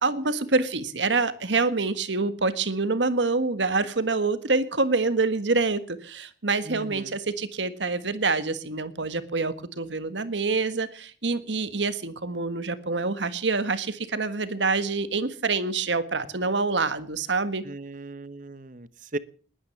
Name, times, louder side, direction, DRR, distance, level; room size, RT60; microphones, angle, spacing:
voice 1, 0.0-17.6, right 3 dB, 90° right, 13 dB, 1.6 m, -26 dB
voice 2, 6.6-7.2 17.6-19.2, right 2 dB, 45° right, 16 dB, 1.0 m, -37 dB
20.5 x 9.8 x 7.2 m, 0.42 s
head